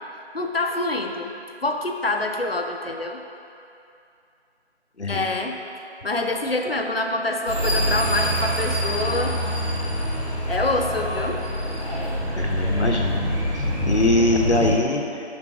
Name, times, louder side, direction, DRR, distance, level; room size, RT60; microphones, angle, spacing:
voice 1, 0.3-1.3 1.6-3.2 5.1-5.6 6.0-9.3 10.5-11.4, left 2 dB, 60° left, 3 dB, 0.7 m, -26 dB
voice 2, 5.0-5.3 12.4-13.2 13.5-15.2, left 2 dB, 80° left, 1 dB, 1.1 m, -22 dB
sound 1, 7.5-14.7, equal, 25° right, 1.8 m, -25 dB
6.1 x 5.4 x 4.8 m, 2.6 s
figure-of-eight pair, 175°, 34 cm